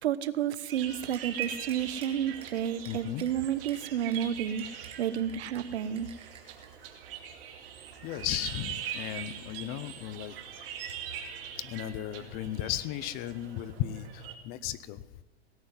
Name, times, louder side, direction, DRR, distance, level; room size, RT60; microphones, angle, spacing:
voice 1, 0.0-6.1, right 10 dB, 75° right, 16 dB, 1.0 m, -31 dB
sound 1, 0.7-14.3, right 8 dB, 55° right, 2.3 m, -42 dB
sound 2, 1.1-2.1 2.4-2.5 2.8-3.3 3.7-3.8 4.1-4.2 4.6-5.6 6.0-6.7, right 7 dB, 15° right, 1.7 m, -50 dB
voice 2, 2.9-3.2 8.0-10.4 11.6-15.0, left 13 dB, 30° left, 17 dB, 0.6 m, -35 dB
17.5 x 7.7 x 9.7 m, 1.2 s
hypercardioid pair, 140°, 33 cm